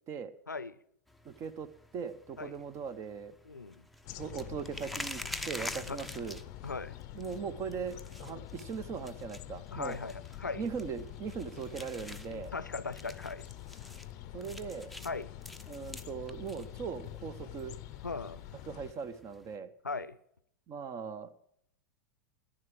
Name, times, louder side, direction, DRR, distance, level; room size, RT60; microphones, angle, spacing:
sound 1, 1.1-19.6, left 1 dB, ahead, 0.7 m, -48 dB
voice 1, 1.2-1.7 1.9-3.4 4.2-6.4 7.1-10.0 10.6-12.5 14.3-14.9 15.7-17.8 18.7-19.7 20.7-21.3, right 6 dB, 30° right, 0.9 m, -39 dB
voice 2, 3.4-3.9 5.9-6.0 6.6-6.9 9.7-10.6 12.3-13.4 15.0-15.3 18.0-18.4 19.8-20.2, left 4 dB, 85° left, 0.6 m, -38 dB
sound 2, 4.0-18.9, left 14 dB, 40° left, 0.6 m, -46 dB
11.0 x 10.0 x 7.5 m
figure-of-eight pair, 90°, 10 cm